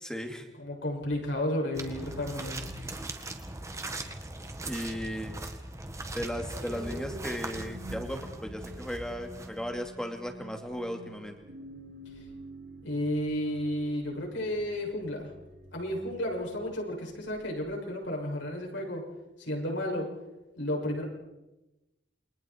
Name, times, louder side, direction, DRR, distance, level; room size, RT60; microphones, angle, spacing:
voice 1, 0.0-0.5 4.6-5.3 6.1-11.4, equal, 5° left, 4 dB, 2.4 m, -36 dB
voice 2, 0.6-2.6 12.8-15.3 15.7-19.0 19.4-20.1 20.6-21.0, left 1 dB, 80° left, -1 dB, 7.1 m, -32 dB
sound 1, 1.7-9.9, right 2 dB, 15° right, 1.8 m, -40 dB
sound 2, 6.5-16.8 17.3-17.6, right 1 dB, 55° right, 6.1 m, -48 dB
29.0 x 24.5 x 4.6 m, 1.0 s
head